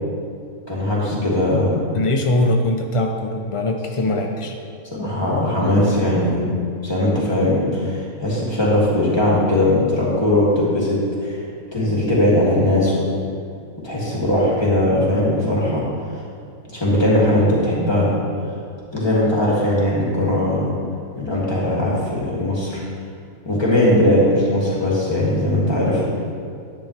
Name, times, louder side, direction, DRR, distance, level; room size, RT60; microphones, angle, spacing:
voice 1, 0.7-1.8 4.9-6.6 6.8-11.4 11.7-13.1 13.8-15.8 16.7-18.1 18.9-20.7 21.1-22.8 23.4-26.0, left 1 dB, 15° left, -7 dB, 2.5 m, -19 dB
voice 2, 1.9-4.5, left 1 dB, 55° left, 2 dB, 0.3 m, -21 dB
11.0 x 9.7 x 3.4 m, 2.4 s
omnidirectional pair, 1.5 m